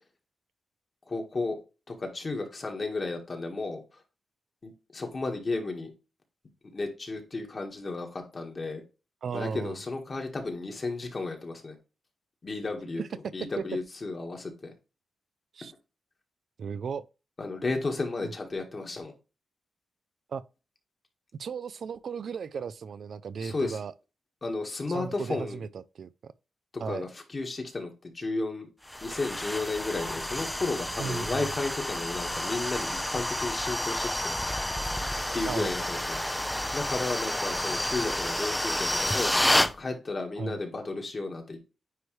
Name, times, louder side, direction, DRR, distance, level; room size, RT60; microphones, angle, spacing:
voice 1, 1.1-1.6 1.9-3.8 4.6-5.9 6.7-8.8 9.3-11.7 12.4-13.0 13.3-14.7 17.4-19.1 23.4-23.8 24.4-25.6 26.9-28.7 29.0-34.3 35.3-36.2 36.7-39.3 39.6-41.6, left 3 dB, 35° left, 1.6 m, -33 dB
voice 2, 9.2-9.8 13.0-13.1 13.6-13.7 15.5-15.7 16.6-17.1 18.2-18.3 20.3-20.4 21.4-23.9 24.9-26.3 26.8-27.1 31.0-31.4 35.5-35.7 40.4-40.6, right 6 dB, 60° right, 0.4 m, -35 dB
sound 1, 28.9-39.7, left 1 dB, 5° left, 0.4 m, -30 dB
9.4 x 3.2 x 3.2 m
wide cardioid pair, 145°, 0 cm